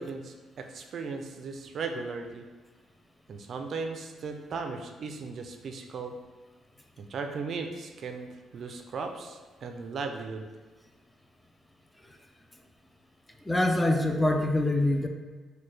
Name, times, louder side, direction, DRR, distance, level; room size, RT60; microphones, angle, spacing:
voice 1, 0.0-2.5 3.3-6.1 7.0-10.5, right 4 dB, 60° right, 5 dB, 0.4 m, -37 dB
voice 2, 13.5-15.1, left 1 dB, 10° left, 4 dB, 0.4 m, -24 dB
4.3 x 2.2 x 3.2 m, 1.3 s
cardioid pair, 90°, 0 cm